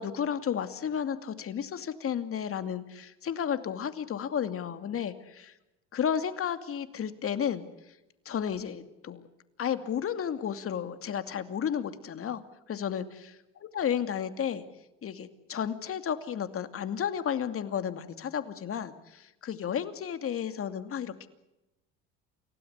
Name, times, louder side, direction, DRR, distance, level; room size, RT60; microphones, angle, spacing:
voice 1, 0.0-5.5 5.9-7.7 8.3-9.3 9.6-12.4 12.7-13.4 13.7-14.6 15.0-21.3, left 8 dB, 45° left, 10 dB, 2.6 m, -32 dB
29.0 x 17.0 x 8.2 m, 0.94 s
supercardioid pair, 90°, 31 cm